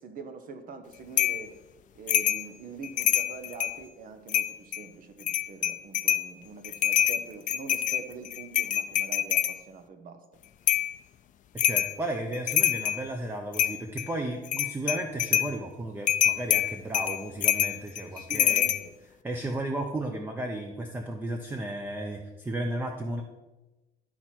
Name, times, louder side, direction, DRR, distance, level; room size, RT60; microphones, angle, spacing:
voice 1, 0.0-1.6 1.9-10.3 18.1-18.9, right 4 dB, 55° right, 8 dB, 1.1 m, -44 dB
sound 1, 1.2-1.4 2.1-2.4 2.8-3.8 4.3-4.8 5.2-6.3 6.6-9.6 10.7-10.9 11.6-11.9 12.3-13.0 13.5-14.1 14.4-15.5 16.1-18.8, left 11 dB, 50° left, 0.5 m, -25 dB
voice 2, 11.5-18.7 19.2-23.2, right 1 dB, 10° right, 4 dB, 0.7 m, -34 dB
12.0 x 4.4 x 4.5 m, 1.1 s
cardioid pair, 110°, 17 cm